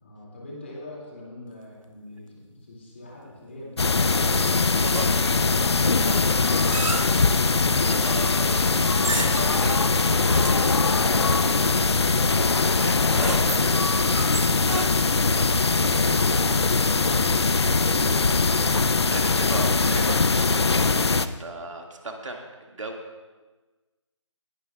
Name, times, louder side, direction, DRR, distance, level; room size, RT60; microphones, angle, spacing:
voice 1, 0.0-7.1 15.7-18.4, left 1 dB, 25° left, -4 dB, 2.2 m, -42 dB
sound 1, 3.8-21.3, left 4 dB, 55° left, 0.5 m, -21 dB
Rusty oven door, 4.8-5.4 6.0-7.3 8.9-9.6 10.2-10.7 12.9-15.2, right 3 dB, 90° right, 0.9 m, -33 dB
voice 2, 7.9-13.8 14.6-15.2 19.1-21.0 21.4-23.0, right 2 dB, 70° right, 2 dB, 1.8 m, -37 dB
19.0 x 11.5 x 2.3 m, 1.3 s
figure-of-eight pair, 180°, 16 cm